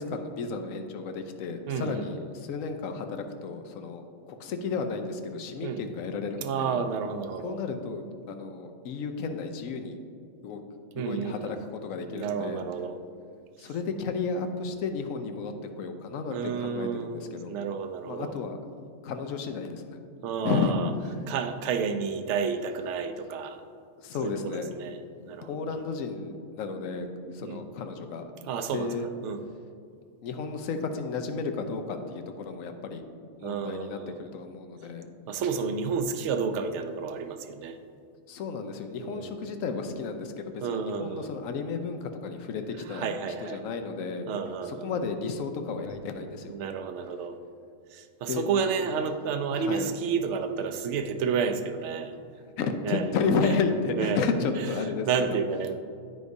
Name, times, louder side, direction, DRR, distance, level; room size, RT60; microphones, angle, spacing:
voice 1, 0.0-6.8 7.4-10.0 10.4-10.6 11.0-12.6 13.6-17.6 18.0-18.6 19.0-20.0 20.4-20.7 24.0-24.7 25.4-27.1 27.3-28.3 28.7-29.1 30.2-33.0 33.4-35.1 38.3-43.1 43.4-44.3 44.7-46.5 48.3-48.5 48.8-49.0 49.5-49.9 52.6-55.4, left 4 dB, 85° left, 6 dB, 1.1 m, -32 dB
voice 2, 1.7-2.2 5.6-5.8 6.3-7.6 10.9-11.6 12.1-13.0 16.3-18.3 20.2-20.9 21.3-23.6 24.2-25.0 25.2-25.9 27.4-27.6 28.5-28.9 29.2-29.5 33.4-34.3 35.3-37.8 39.0-39.3 40.6-41.3 42.9-43.6 44.3-44.9 46.5-47.4 47.9-52.1 52.8-53.1 54.0-54.2 55.1-55.7, right 6 dB, 70° right, 8 dB, 0.8 m, -31 dB
12.0 x 4.7 x 2.7 m, 2.4 s
omnidirectional pair, 1.4 m